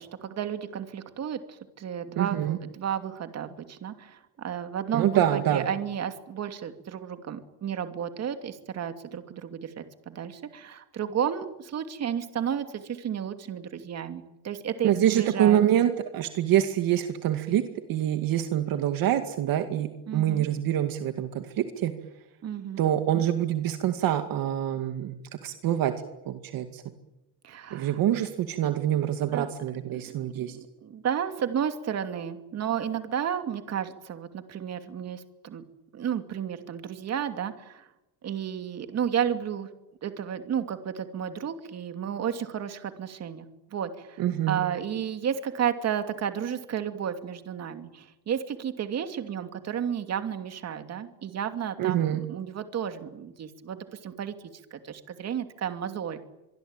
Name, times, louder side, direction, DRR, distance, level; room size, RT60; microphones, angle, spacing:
voice 1, 0.0-15.6 20.1-20.5 22.4-22.8 27.4-27.9 29.3-29.5 29.9-30.1 30.5-35.6 35.9-37.9 38.2-39.7 40.0-43.5 43.7-54.3 54.7-56.2, right 8 dB, 40° right, 8 dB, 2.7 m, -32 dB
voice 2, 2.2-2.6 4.9-5.7 14.8-17.6 17.9-21.9 22.8-25.2 25.4-25.9 26.3-26.8 27.7-30.6 44.2-44.6 51.8-52.2, right 11 dB, 60° right, 8 dB, 2.2 m, -25 dB
26.0 x 23.0 x 9.1 m, 0.94 s
cardioid pair, 165°, 40 cm